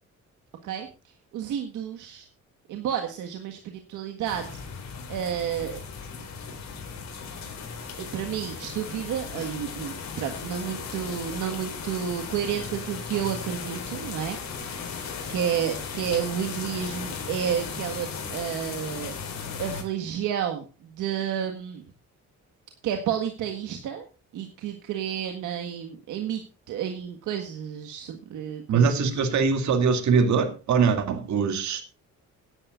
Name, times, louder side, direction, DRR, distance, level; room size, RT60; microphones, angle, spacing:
voice 1, 1.3-2.3 2.7-4.5 5.1-5.8 8.0-14.8 15.3-19.1 19.6-21.8 22.8-24.0 24.3-26.4 26.7-29.1, right 9 dB, 85° right, 1.7 m, -31 dB
sound 1, 4.2-19.8, left 6 dB, 65° left, 4.8 m, -36 dB
voice 2, 28.7-31.8, right 5 dB, 70° right, 2.6 m, -22 dB
17.5 x 11.0 x 2.5 m
cardioid pair, 90°, 30 cm